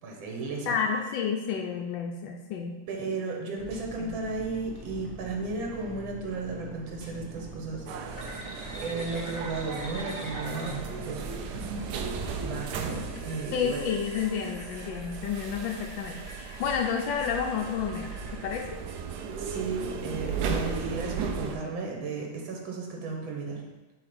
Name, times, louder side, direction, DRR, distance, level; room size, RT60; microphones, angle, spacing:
voice 1, 0.0-0.7 2.9-7.9 8.8-11.3 12.4-13.8 19.4-23.6, right 3 dB, 85° right, 0 dB, 1.8 m, -34 dB
voice 2, 0.7-2.8 4.0-4.2 13.5-18.8, left 7 dB, 80° left, 2 dB, 1.3 m, -30 dB
sound 1, 3.6-13.1, right 1 dB, 45° right, 1.2 m, -44 dB
sound 2, 7.9-21.5, right 5 dB, 70° right, 1.1 m, -36 dB
sound 3, 8.2-18.4, equal, 25° left, 1.0 m, -43 dB
7.7 x 3.3 x 5.1 m, 1.1 s
omnidirectional pair, 2.1 m